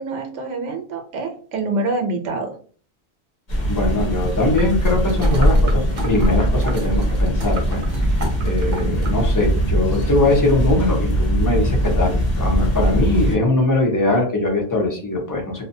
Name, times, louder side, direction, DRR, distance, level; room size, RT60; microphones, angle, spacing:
voice 1, 0.0-2.6, right 2 dB, 90° right, 4 dB, 0.9 m, -26 dB
sound 1, 3.5-13.4, equal, 45° left, 0.8 m, -20 dB
voice 2, 3.7-8.1 8.4-15.7, left 2 dB, 25° left, 1 dB, 0.5 m, -21 dB
sound 2, 4.5-9.2 9.6-9.7, right 2 dB, 45° right, 0.8 m, -34 dB
2.7 x 2.1 x 2.6 m, 0.43 s
omnidirectional pair, 1.2 m